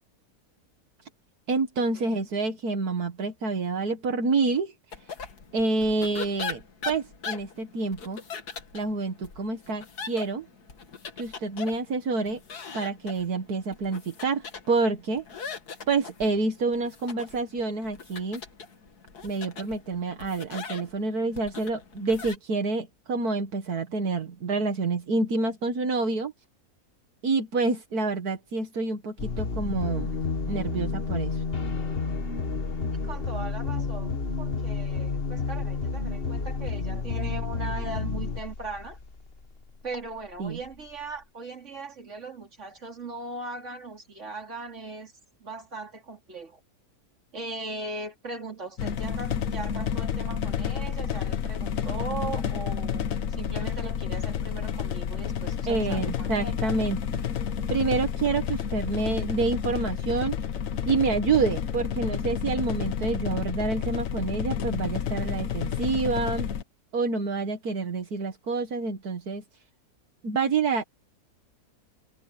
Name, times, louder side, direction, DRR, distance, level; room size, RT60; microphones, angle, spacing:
voice 1, 1.5-4.7 5.5-8.2 8.7-10.5 11.2-12.4 12.7-15.2 15.9-18.4 19.2-26.3 27.2-30.1 30.5-31.4 40.4-40.6 55.7-57.2 57.7-60.4 60.9-66.5 66.9-69.4 70.2-70.8, right 3 dB, 75° right, 2.2 m, -28 dB
sound 1, 4.9-22.4, left 5 dB, 85° left, 2.4 m, -41 dB
sound 2, 29.2-39.4, left 4 dB, 40° left, 1.8 m, -30 dB
voice 2, 33.0-39.0 39.8-45.1 45.4-46.6 47.3-56.7, right 3 dB, 50° right, 3.4 m, -39 dB
sound 3, 48.8-66.6, left 8 dB, 60° left, 1.3 m, -30 dB
omnidirectional pair, 1.6 m